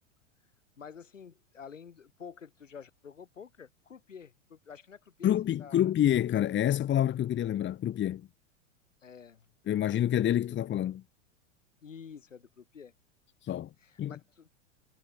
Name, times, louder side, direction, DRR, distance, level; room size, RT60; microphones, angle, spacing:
voice 1, 0.8-5.3 5.6-5.8 9.0-9.5 11.8-12.9 13.8-14.5, left 6 dB, 85° left, 7.8 m, -49 dB
voice 2, 5.2-8.3 9.7-11.0 13.4-13.7 14.0-14.1, left 11 dB, 30° left, 3.0 m, -27 dB
hypercardioid pair, 100°, 37 cm